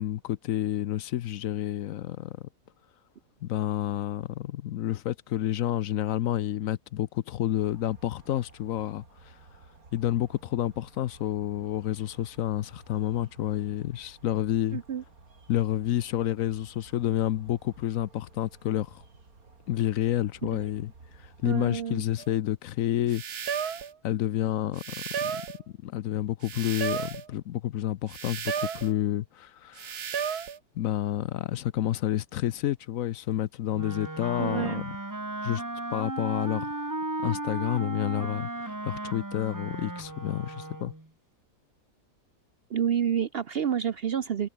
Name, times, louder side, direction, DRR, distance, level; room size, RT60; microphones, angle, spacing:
voice 1, 0.0-2.4 3.4-9.4 9.9-14.8 15.5-19.0 19.7-23.2 24.0-25.4 25.8-30.1 30.8-34.8 35.4-35.6 35.9-36.7 37.2-40.9, left 12 dB, 70° left, 1.0 m, -29 dB
sound 1, 7.5-22.1, right 3 dB, 70° right, 3.8 m, -54 dB
voice 2, 14.7-15.0 20.4-20.7 21.4-22.0 34.4-34.8 42.7-44.5, right 8 dB, 55° right, 0.7 m, -29 dB
sound 2, 22.2-22.3 23.1-23.9 24.8-25.6 26.4-27.3 28.1-28.9 29.8-30.6, right 7 dB, 90° right, 2.1 m, -33 dB
Wind instrument woodwind instrument, 33.7-41.1, right 2 dB, 15° right, 1.3 m, -35 dB
omnidirectional pair, 1.6 m